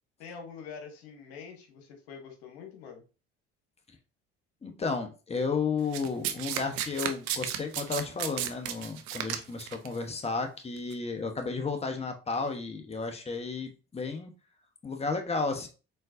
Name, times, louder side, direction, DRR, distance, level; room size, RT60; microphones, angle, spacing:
voice 1, 0.2-3.0, left 6 dB, 80° left, 1.1 m, -45 dB
voice 2, 4.6-14.3 14.8-15.7, left 4 dB, 20° left, 1.0 m, -33 dB
Domestic sounds home sounds, 5.9-9.9 10.8-10.9, right 10 dB, 70° right, 0.7 m, -33 dB
4.4 x 3.9 x 2.6 m
hypercardioid pair, 60°, 31 cm